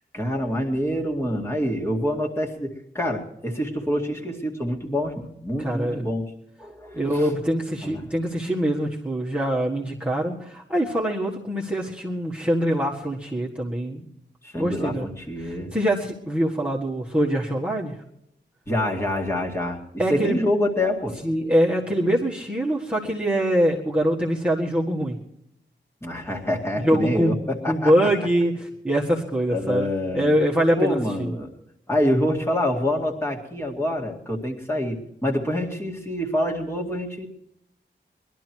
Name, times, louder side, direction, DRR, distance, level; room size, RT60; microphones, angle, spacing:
voice 1, 0.1-6.2 6.6-7.3 7.8-8.0 14.4-15.7 18.7-19.8 20.1-21.2 26.0-27.9 29.5-30.3 30.8-31.5 31.9-37.3, left 1 dB, 15° left, -1 dB, 2.2 m, -26 dB
voice 2, 5.6-6.1 6.9-14.1 14.6-15.1 15.4-18.0 20.0-20.4 21.2-25.2 26.7-31.3, equal, 5° right, -5 dB, 1.7 m, -24 dB
20.5 x 12.5 x 4.6 m, 0.79 s
wide cardioid pair, 115°, 19 cm